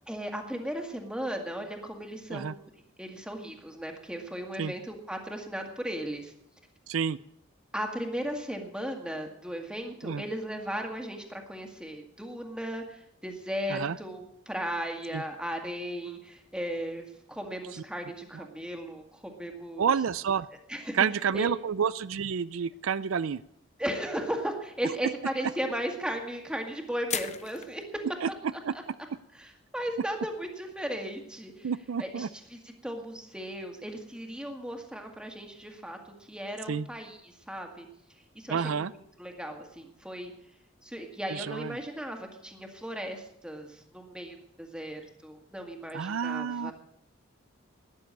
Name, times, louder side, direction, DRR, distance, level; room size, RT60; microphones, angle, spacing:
voice 1, 0.1-2.7 3.0-6.3 7.7-19.9 20.7-21.0 21.3-21.5 23.8-27.8 28.5-28.8 29.3-31.7 32.0-37.9 38.3-40.3 40.8-46.7, equal, 5° right, 3 dB, 2.0 m, -36 dB
voice 2, 19.8-20.5 20.9-23.4 28.2-28.3 28.6-28.7 31.6-32.3 36.7-36.9 38.5-38.9 41.3-41.8 45.9-46.7, right 7 dB, 85° right, 17 dB, 0.4 m, -29 dB
sound 1, 24.4-24.5 27.1-27.8, left 9 dB, 35° left, 0.7 m, -34 dB
13.0 x 10.5 x 8.3 m, 0.77 s
head